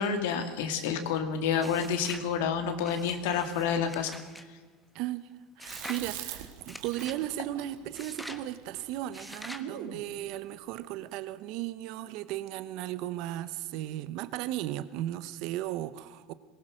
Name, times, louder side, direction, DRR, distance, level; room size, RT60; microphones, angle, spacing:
voice 1, 0.0-4.2, left 7 dB, 85° left, 6 dB, 2.3 m, -29 dB
sound 1, 1.6-2.3 2.8-4.5 5.6-6.1 6.7-7.2 7.9-8.4 9.1-9.7, left 1 dB, 5° left, 1.2 m, -45 dB
voice 2, 4.9-5.3 5.6-16.3, right 14 dB, 60° right, 14 dB, 0.9 m, -36 dB
Chewing mastication, 5.7-10.1, right 10 dB, 80° right, 2.3 m, -43 dB
21.5 x 19.0 x 6.4 m, 1.4 s
supercardioid pair, 135°, 0 cm